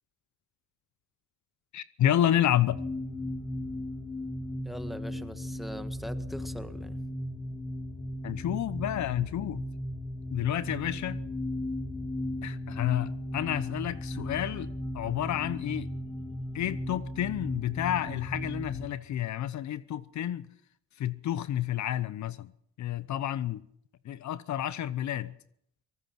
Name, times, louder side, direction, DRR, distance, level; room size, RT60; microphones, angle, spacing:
voice 1, 1.7-2.8 8.2-9.6 10.3-11.2 12.4-14.7 14.9-15.9 16.5-20.5 21.0-22.5 22.8-23.6 24.1-25.3, left 11 dB, 70° left, 0.9 m, -30 dB
sound 1, 2.7-18.9, left 1 dB, 20° left, 2.6 m, -36 dB
voice 2, 4.6-7.0, equal, ahead, 1.7 m, -41 dB
24.0 x 19.0 x 5.9 m
cardioid pair, 90°, 30 cm